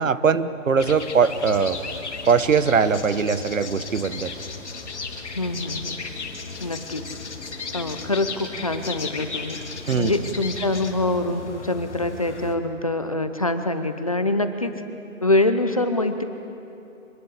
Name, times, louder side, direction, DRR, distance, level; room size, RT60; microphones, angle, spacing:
voice 1, 0.0-1.8 2.3-4.3 9.9-10.1, right 6 dB, 70° right, 13 dB, 1.3 m, -21 dB
sound 1, 0.8-12.5, left 4 dB, 55° left, 2.6 m, -35 dB
voice 2, 5.4-6.0 6.6-7.0 7.7-9.6 10.0-14.7 15.2-16.2, left 2 dB, 25° left, 8 dB, 0.7 m, -24 dB
25.0 x 19.5 x 8.3 m, 2.8 s
hypercardioid pair, 170°, 41 cm